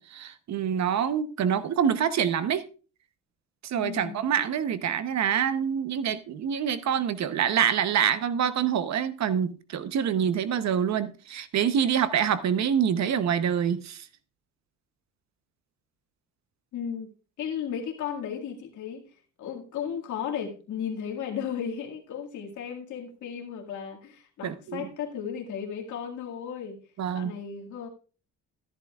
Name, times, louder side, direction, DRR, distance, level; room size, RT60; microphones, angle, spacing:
voice 1, 0.0-2.6 3.6-14.1 24.4-24.9 27.0-27.3, right 8 dB, 65° right, 0.8 m, -26 dB
voice 2, 3.7-4.2 16.7-17.1 17.4-19.0 19.4-26.8 27.1-27.9, left 8 dB, 75° left, 2.0 m, -35 dB
13.5 x 10.5 x 2.4 m
cardioid pair, 90°, 30 cm